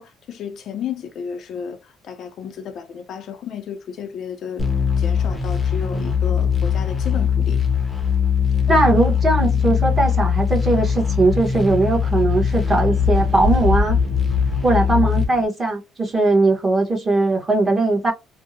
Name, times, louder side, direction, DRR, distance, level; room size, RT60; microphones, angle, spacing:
voice 1, 0.0-4.7 5.0-7.6, left 7 dB, 50° left, 0.5 m, -33 dB
sound 1, 4.6-15.2, left 7 dB, 10° left, 0.7 m, -21 dB
voice 2, 8.7-14.0 14.6-18.1, right 2 dB, 20° right, 0.9 m, -19 dB
sound 2, 10.1-15.4, left 3 dB, 65° right, 1.1 m, -27 dB
2.6 x 2.0 x 2.6 m
cardioid pair, 155°, 0 cm